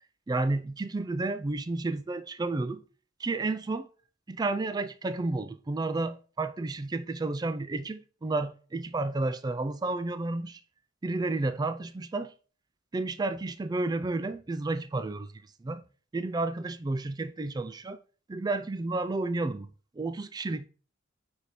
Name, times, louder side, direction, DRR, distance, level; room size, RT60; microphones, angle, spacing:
voice 1, 0.3-2.8 3.2-3.9 4.3-10.6 11.0-12.3 12.9-15.3 15.6-15.8 16.1-18.0 18.3-19.7 20.0-20.7, right 2 dB, 20° right, 0.3 m, -31 dB
9.1 x 3.4 x 4.2 m
head